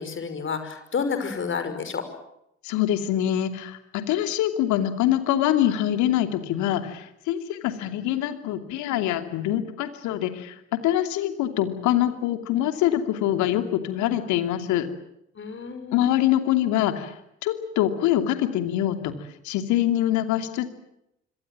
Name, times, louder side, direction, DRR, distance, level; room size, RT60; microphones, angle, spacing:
voice 1, 0.0-2.0 15.4-16.0, left 5 dB, 35° left, 9 dB, 5.9 m, -30 dB
voice 2, 2.6-14.9 15.9-17.1 17.4-19.1 19.4-20.7, left 12 dB, 60° left, 8 dB, 2.8 m, -24 dB
26.0 x 26.0 x 7.6 m, 0.81 s
figure-of-eight pair, 55°, 33 cm